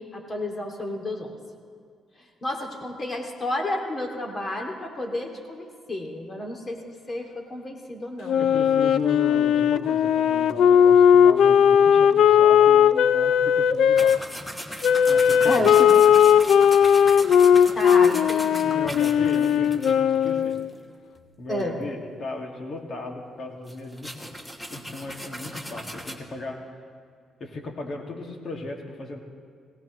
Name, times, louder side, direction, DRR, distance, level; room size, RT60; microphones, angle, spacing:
voice 1, 0.0-1.4 2.2-8.5 15.4-15.9 17.8-18.8 21.5-21.7, left 1 dB, 35° left, 2 dB, 2.3 m, -31 dB
Wind instrument woodwind instrument, 8.3-14.2 14.8-20.7, left 8 dB, 70° left, 0.4 m, -18 dB
voice 2, 8.4-14.2 15.1-15.7 18.6-20.6 21.4-24.3 24.7-26.6 27.4-29.2, left 2 dB, 50° left, 1 dB, 2.1 m, -36 dB
sound 1, 14.0-20.7 21.2-21.3 21.6-21.7 23.7-26.1, equal, 10° left, 1.3 m, -38 dB
18.0 x 18.0 x 3.1 m, 2.1 s
cardioid pair, 90°, 0 cm